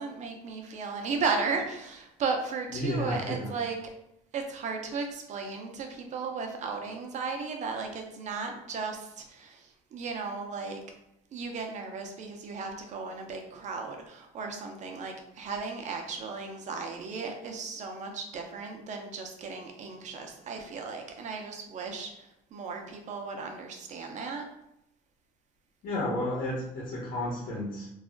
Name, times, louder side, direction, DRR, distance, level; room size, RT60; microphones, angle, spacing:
voice 1, 0.0-3.9 4.3-10.8 11.3-24.4, right 4 dB, 45° right, 3 dB, 0.6 m, -35 dB
voice 2, 2.7-3.5 25.8-27.9, left 1 dB, 55° left, -5 dB, 0.9 m, -32 dB
2.4 x 2.0 x 3.7 m, 0.82 s
supercardioid pair, 90°, 16 cm